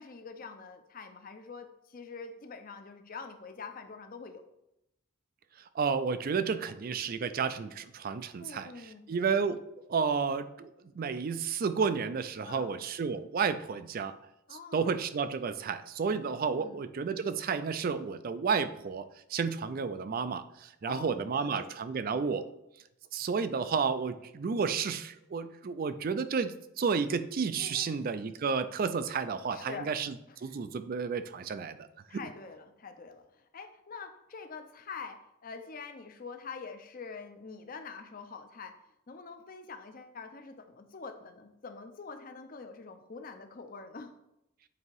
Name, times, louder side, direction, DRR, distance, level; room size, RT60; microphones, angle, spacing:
voice 1, 0.0-4.4 8.4-9.1 12.4-12.8 14.5-14.9 16.5-16.9 20.8-21.7 27.6-28.1 29.5-29.9 32.1-33.2 33.5-38.8 39.1-44.1, left 4 dB, 40° left, 7 dB, 0.5 m, -45 dB
voice 2, 5.7-9.6 9.9-10.7 10.9-14.1 14.7-22.5 23.1-31.9 32.1-32.2, right 5 dB, 40° right, 12 dB, 0.3 m, -31 dB
8.1 x 2.8 x 4.6 m, 0.84 s
head